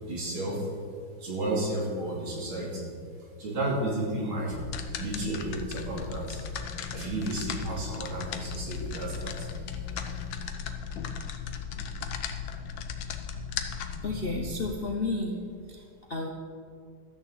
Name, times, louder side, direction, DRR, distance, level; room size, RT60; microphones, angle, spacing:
voice 1, 0.0-0.7 1.2-2.9 3.4-4.6 5.0-6.4 6.9-9.5, right 1 dB, 80° right, -4 dB, 3.7 m, -32 dB
sound 1, 4.5-14.7, left 7 dB, 75° left, 1.6 m, -36 dB
voice 2, 14.0-16.3, left 2 dB, 45° left, 1 dB, 0.7 m, -32 dB
13.0 x 6.6 x 8.0 m, 2.2 s
omnidirectional pair, 2.2 m